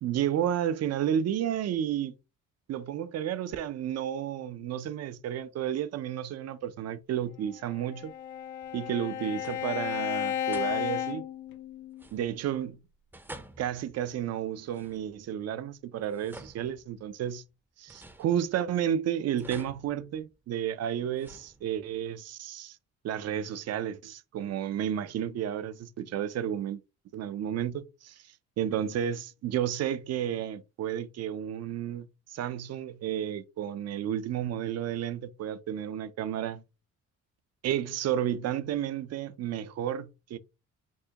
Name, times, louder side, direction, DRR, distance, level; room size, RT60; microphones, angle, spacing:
voice 1, 0.0-2.1 2.7-8.1 8.7-11.2 12.1-12.8 13.6-17.4 17.8-22.8 23.0-26.8 27.1-28.2 28.6-36.6 37.6-40.4, right 10 dB, 55° right, 0.5 m, -32 dB
Bowed string instrument, 7.6-12.1, left 10 dB, 70° left, 0.6 m, -33 dB
sound 1, 8.6-9.1 9.4-9.9 10.5-11.2 11.9-12.6 13.1-15.4 16.0-17.3 17.9-18.8 19.4-20.6 21.1-22.0, right 1 dB, 5° right, 0.5 m, -50 dB
4.6 x 2.2 x 2.8 m
cardioid pair, 90°, 30 cm